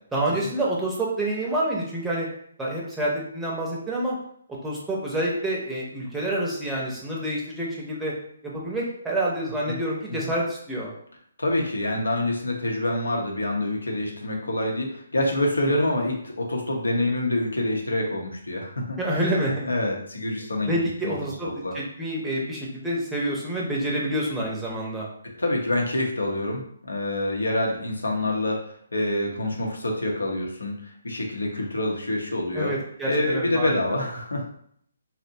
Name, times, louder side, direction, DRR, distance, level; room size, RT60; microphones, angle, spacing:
voice 1, 0.1-2.3 2.6-4.2 4.6-8.1 8.4-10.9 15.6-15.9 19.0-19.7 20.7-21.5 21.7-25.1 32.5-34.0, right 1 dB, 5° right, -5 dB, 0.6 m, -28 dB
voice 2, 11.4-19.2 19.6-20.7 21.0-21.1 21.6-21.7 25.2-32.7 33.1-34.5, left 1 dB, 90° left, 0 dB, 0.7 m, -26 dB
2.7 x 2.1 x 2.6 m, 0.65 s
figure-of-eight pair, 145°, 0 cm